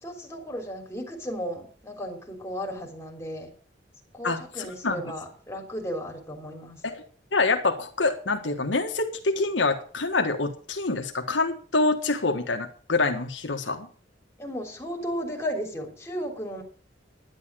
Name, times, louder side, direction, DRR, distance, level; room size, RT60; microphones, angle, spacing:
voice 1, 0.0-3.5 4.1-6.8 14.4-16.6, equal, 15° left, 2 dB, 3.4 m, -34 dB
voice 2, 4.2-5.0 6.8-7.0 7.3-13.9, left 3 dB, 80° left, 4 dB, 1.6 m, -26 dB
11.0 x 10.0 x 6.3 m, 0.43 s
head